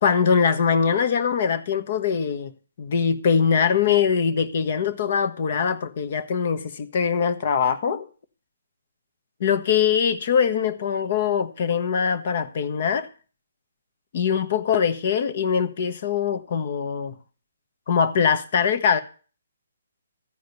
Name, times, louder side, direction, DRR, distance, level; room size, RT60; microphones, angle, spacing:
voice 1, 0.0-2.5 2.8-8.1 9.4-13.1 14.1-17.2 17.9-19.0, left 6 dB, 45° left, 1.3 m, -22 dB
14.5 x 5.1 x 9.4 m
hypercardioid pair, 155°, 0 cm